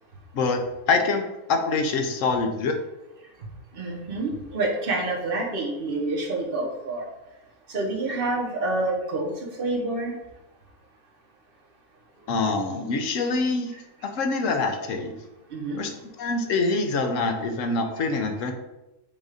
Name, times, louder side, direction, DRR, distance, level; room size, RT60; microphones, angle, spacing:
voice 1, 0.9-2.8 12.3-13.7 14.0-15.1 15.8-15.9 16.2-18.5, left 3 dB, 65° left, 5 dB, 1.1 m, -25 dB
voice 2, 3.7-7.1 7.7-9.3 9.6-10.1 13.1-13.2 15.5-15.8, right 2 dB, 40° right, -1 dB, 1.3 m, -27 dB
7.2 x 2.6 x 5.0 m, 0.96 s
omnidirectional pair, 1.5 m